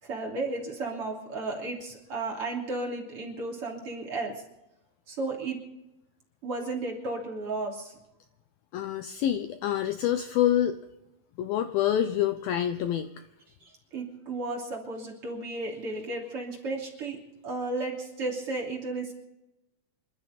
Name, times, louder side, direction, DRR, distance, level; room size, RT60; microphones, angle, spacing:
voice 1, 0.0-4.4 5.1-5.6 6.4-7.9 13.6-17.2 17.4-19.1, right 2 dB, 35° right, -1 dB, 3.3 m, -34 dB
voice 2, 8.7-10.8 11.4-13.1, left 11 dB, 90° left, 8 dB, 2.0 m, -26 dB
27.5 x 13.0 x 4.1 m, 0.92 s
omnidirectional pair, 5.3 m